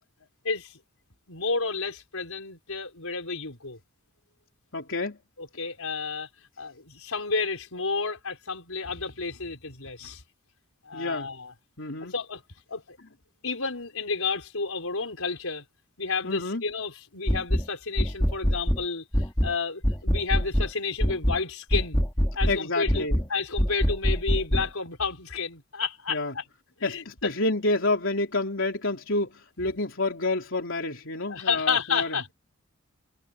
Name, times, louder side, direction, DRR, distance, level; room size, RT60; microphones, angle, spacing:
voice 1, 0.4-0.8 1.3-3.8 5.4-6.3 6.6-10.2 10.8-11.5 12.0-12.4 12.7-13.0 13.4-15.6 16.0-22.0 22.3-26.5 26.8-27.3 29.6-29.7 31.3-32.3, left 4 dB, 85° left, 4.7 m, -31 dB
voice 2, 4.7-5.2 10.9-11.3 11.8-12.1 16.2-16.6 22.5-23.2 26.1-26.3 26.8-29.3 29.6-32.1, left 2 dB, 65° left, 3.5 m, -28 dB
sound 1, 17.3-17.7 18.0-18.8 19.1-19.5 19.8-20.7 21.0-21.4 21.7-22.6 22.9-23.3 23.6-24.7, equal, 15° left, 2.0 m, -24 dB
head